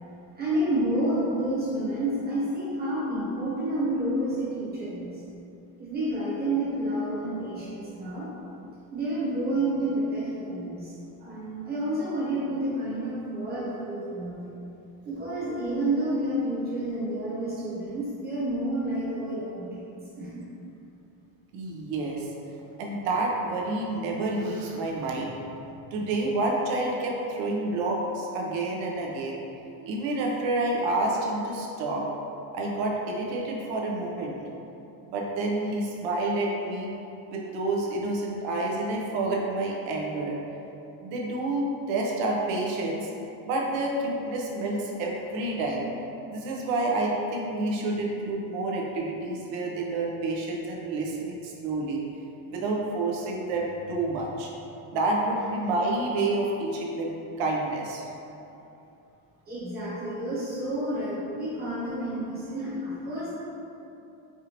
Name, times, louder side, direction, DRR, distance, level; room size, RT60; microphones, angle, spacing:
voice 1, 0.4-5.2 5.8-8.3 8.9-10.9 11.2-14.5 15.0-19.9 20.2-20.4 59.5-63.3, right 1 dB, 20° right, -9 dB, 1.0 m, -29 dB
voice 2, 21.5-22.3 22.8-25.4 25.9-29.4 29.8-32.1 32.5-34.4 35.1-36.9 37.3-40.4 41.0-43.1 43.5-45.9 46.3-52.0 52.5-54.5 54.9-58.0, right 2 dB, 85° right, -1 dB, 0.8 m, -29 dB
4.7 x 2.5 x 2.9 m, 2.8 s
cardioid pair, 175°, 45 cm